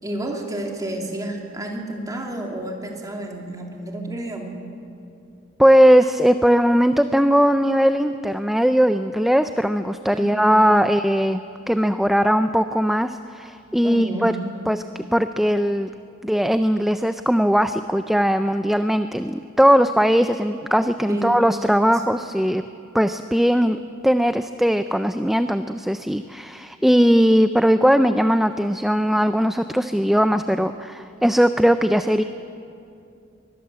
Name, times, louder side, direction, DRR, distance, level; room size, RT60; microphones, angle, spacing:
voice 1, 0.0-4.6 10.1-11.0 13.8-14.4 21.1-21.4 21.9-22.0, right 1 dB, 20° right, 1 dB, 2.8 m, -30 dB
voice 2, 5.6-11.4 11.7-14.3 14.7-15.9 16.2-22.6 22.9-23.8 24.0-32.2, equal, ahead, 9 dB, 0.4 m, -19 dB
23.0 x 20.5 x 7.6 m, 2.6 s
head